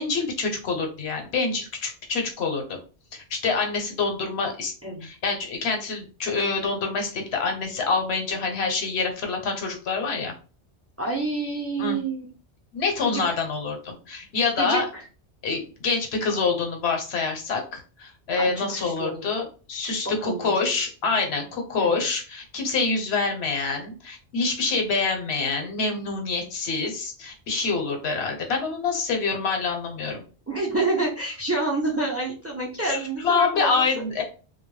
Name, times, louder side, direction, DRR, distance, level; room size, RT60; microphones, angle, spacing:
voice 1, 0.0-2.8 3.1-4.7 5.0-10.3 11.8-12.0 12.7-14.9 15.4-30.2 32.8-34.2, left 4 dB, 70° left, 3 dB, 0.9 m, -26 dB
voice 2, 11.0-12.3 13.1-13.2 14.6-15.0 18.4-19.1 20.2-20.9 21.8-22.1 30.5-33.8, right 2 dB, 20° right, -2 dB, 0.4 m, -28 dB
2.2 x 2.0 x 3.1 m, 0.35 s
omnidirectional pair, 1.2 m